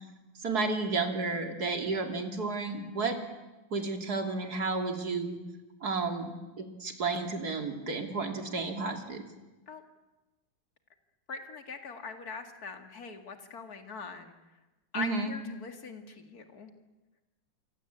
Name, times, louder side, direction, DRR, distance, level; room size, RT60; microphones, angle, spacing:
voice 1, 0.4-3.2 3.7-5.4 5.8-9.2 14.9-15.3, right 3 dB, 50° right, 4 dB, 3.3 m, -32 dB
voice 2, 11.3-14.3 14.9-16.7, left 5 dB, 50° left, 6 dB, 2.7 m, -41 dB
28.0 x 24.0 x 8.3 m, 1.1 s
omnidirectional pair, 2.1 m